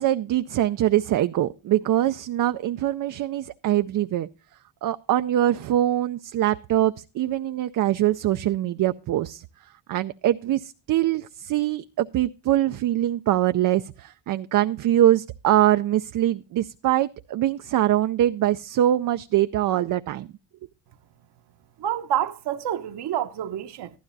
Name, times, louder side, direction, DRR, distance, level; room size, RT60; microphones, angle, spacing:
voice 1, 0.0-4.3 4.8-9.4 9.9-20.3, right 13 dB, 50° right, 0.5 m, -23 dB
voice 2, 21.8-23.9, right 11 dB, 65° right, 1.0 m, -28 dB
14.5 x 12.0 x 2.7 m
cardioid pair, 95°, 43 cm